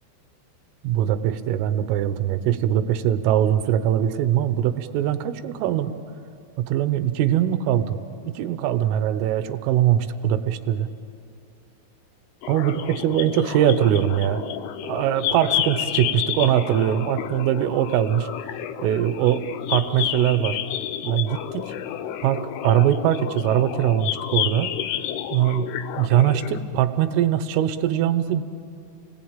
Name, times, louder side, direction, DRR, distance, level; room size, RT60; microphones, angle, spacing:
voice 1, 0.8-6.0 6.6-8.0 8.2-10.9 12.5-14.4 14.8-18.3 18.8-20.6 21.0-21.7 22.2-24.8 25.3-28.4, right 11 dB, 80° right, 10 dB, 3.5 m, -22 dB
sound 1, 12.4-26.6, left 11 dB, 90° left, 2.3 m, -30 dB
30.0 x 20.0 x 9.0 m, 2.5 s
omnidirectional pair, 5.9 m